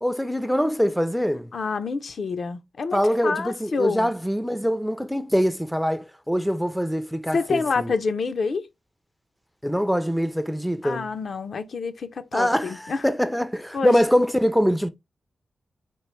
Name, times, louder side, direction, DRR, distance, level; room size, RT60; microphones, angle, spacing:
voice 1, 0.0-1.5 2.9-7.9 9.6-11.1 12.3-14.9, equal, ahead, 0.4 m, -23 dB
voice 2, 1.5-4.1 7.3-8.7 10.8-13.0 13.7-13.9, left 4 dB, 60° left, 0.5 m, -27 dB
4.5 x 2.4 x 3.1 m
cardioid pair, 90°, 0 cm